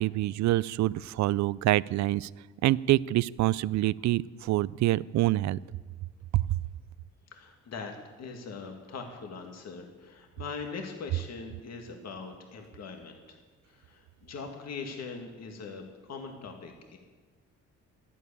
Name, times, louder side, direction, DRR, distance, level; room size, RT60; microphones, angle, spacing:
voice 1, 0.0-2.3 2.6-5.6 6.3-6.4, right 16 dB, 65° right, 21 dB, 0.4 m, -26 dB
voice 2, 7.3-13.4 13.7-17.0, left 4 dB, 60° left, 3 dB, 2.1 m, -41 dB
12.0 x 11.0 x 8.6 m, 1.4 s
cardioid pair, 90°, 30 cm